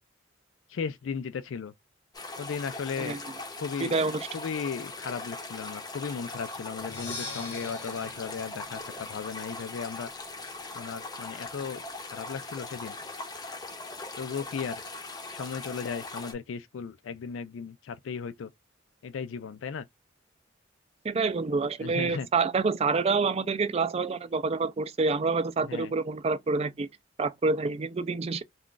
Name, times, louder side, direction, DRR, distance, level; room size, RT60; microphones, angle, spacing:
voice 1, 0.7-1.7 2.4-3.2 3.6-3.9 4.3-10.1 10.7-11.8 12.1-13.0 14.2-14.8 15.3-18.5 19.0-19.9 21.8-22.3 25.6-25.9, left 6 dB, 85° left, 0.4 m, -36 dB
sound 1, 2.1-16.3, left 2 dB, 20° left, 0.6 m, -40 dB
voice 2, 3.8-4.3 21.0-26.9 27.2-28.4, right 4 dB, 30° right, 0.4 m, -27 dB
Percussion, 6.8-10.6, left 2 dB, 60° left, 0.9 m, -44 dB
2.3 x 2.3 x 3.7 m
head